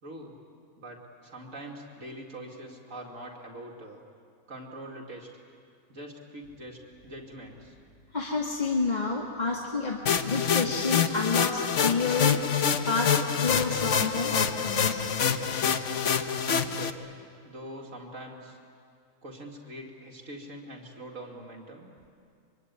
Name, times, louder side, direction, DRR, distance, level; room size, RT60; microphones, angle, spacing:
voice 1, 0.0-0.4 0.8-4.0 4.5-5.3 5.9-7.8 16.4-17.0 17.4-18.6 19.2-21.9, right 1 dB, 60° right, 0 dB, 2.9 m, -43 dB
voice 2, 8.1-12.4 12.9-15.0, left 4 dB, 30° left, -1 dB, 1.8 m, -29 dB
sound 1, 10.1-16.9, left 7 dB, 55° left, 1.3 m, -26 dB
25.0 x 24.0 x 9.6 m, 2.4 s
omnidirectional pair, 1.6 m